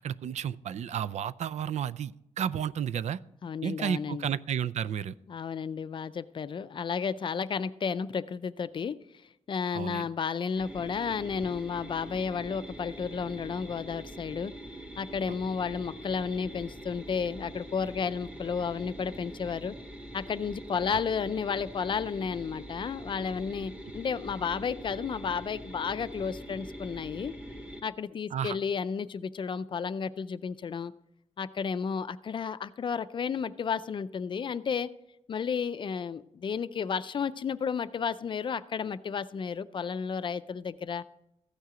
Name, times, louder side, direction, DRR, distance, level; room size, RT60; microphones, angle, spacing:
voice 1, 0.0-3.2 3.6-5.1 9.7-10.1 20.9-21.0 28.3-28.6, right 8 dB, 70° right, 16 dB, 0.4 m, -32 dB
voice 2, 3.4-4.3 5.3-9.0 9.5-14.5 15.0-19.7 20.1-27.3 27.8-30.9 31.4-34.9 35.3-41.0, left 6 dB, 45° left, 14 dB, 0.4 m, -32 dB
sound 1, 10.6-27.8, right 1 dB, 10° right, 1.6 m, -44 dB
14.5 x 9.4 x 5.0 m, 0.81 s
wide cardioid pair, 160°, 12 cm